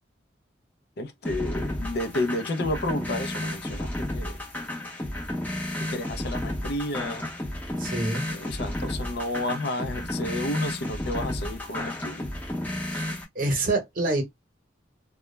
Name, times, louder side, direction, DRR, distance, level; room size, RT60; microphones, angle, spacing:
voice 1, 1.0-4.4 5.8-7.3 8.3-12.3, left 1 dB, 55° left, 0.4 m, -31 dB
sound 1, 1.2-13.2, left 1 dB, 10° left, 0.6 m, -32 dB
voice 2, 7.8-8.3 12.9-14.2, right 2 dB, 45° right, 0.9 m, -27 dB
2.2 x 2.0 x 3.1 m
head